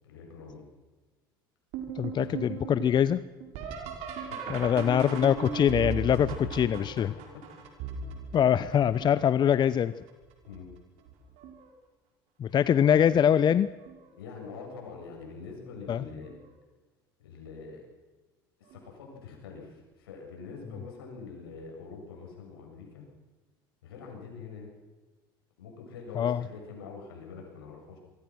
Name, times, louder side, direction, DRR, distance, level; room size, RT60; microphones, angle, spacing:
voice 1, 0.0-0.7 2.2-2.4 4.3-4.4 6.0-6.3 10.5-10.7 14.2-16.3 17.2-17.8 18.6-23.1 23.8-24.7 25.6-28.0, left 5 dB, 80° left, 1 dB, 7.7 m, -44 dB
sound 1, 1.7-9.4 10.1-10.6 11.1-11.7 13.0-13.1 13.8-14.1 16.3-16.4 18.7-18.8, right 4 dB, 65° right, 5.4 m, -38 dB
voice 2, 1.9-3.2 4.5-7.1 8.3-9.9 12.4-13.7 15.9-16.0 26.2-26.4, left 9 dB, 40° left, 16 dB, 0.8 m, -23 dB
25.5 x 23.5 x 6.3 m, 1.2 s
hypercardioid pair, 75°, 12 cm